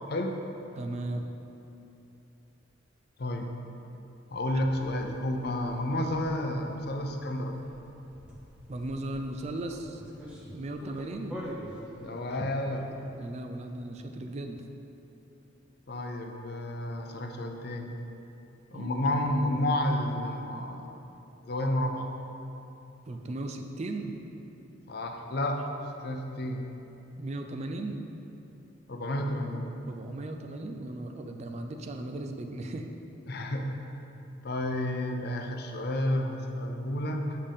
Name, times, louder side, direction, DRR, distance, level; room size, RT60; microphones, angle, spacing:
voice 1, 0.1-0.4 3.2-3.5 4.3-7.6 12.0-12.9 15.9-17.9 18.7-20.9 21.4-22.1 24.9-25.6 26.0-26.6 28.9-29.7 33.3-33.6 34.4-37.4, left 1 dB, 55° left, 3 dB, 0.6 m, -31 dB
voice 2, 0.8-1.3 8.7-10.0 10.5-11.4 13.1-14.6 18.7-18.9 23.1-24.2 27.2-28.0 29.9-32.9, right 2 dB, 35° right, 5 dB, 0.4 m, -36 dB
sound 1, 4.3-13.3, equal, 5° right, 0.9 m, -47 dB
7.5 x 6.5 x 3.5 m, 2.9 s
head